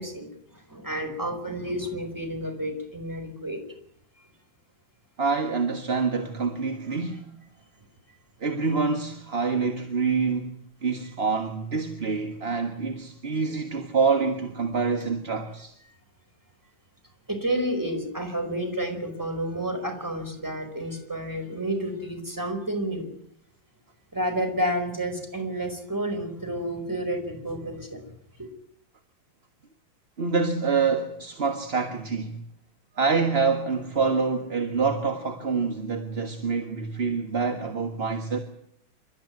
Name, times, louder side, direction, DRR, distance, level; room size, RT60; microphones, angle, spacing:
voice 1, 0.0-3.6 17.3-23.1 24.1-28.0 28.4-28.5, right 1 dB, 10° right, 4.9 m, -30 dB
voice 2, 5.2-7.3 8.4-10.5 10.8-15.7 30.2-32.3 33.0-38.4, right 4 dB, 35° right, 1.7 m, -26 dB
27.5 x 13.5 x 9.6 m
omnidirectional pair, 2.1 m